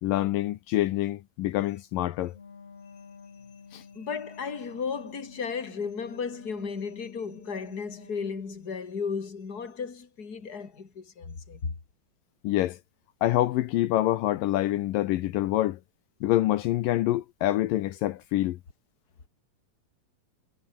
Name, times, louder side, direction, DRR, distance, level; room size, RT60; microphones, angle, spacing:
voice 1, 0.0-2.3 3.7-3.8 12.4-12.8 13.2-15.8 16.2-18.6, left 15 dB, 75° left, 2.5 m, -26 dB
Wind instrument woodwind instrument, 2.3-8.8, left 5 dB, 45° left, 4.2 m, -50 dB
voice 2, 3.9-11.7, left 5 dB, 30° left, 3.2 m, -34 dB
omnidirectional pair, 4.1 m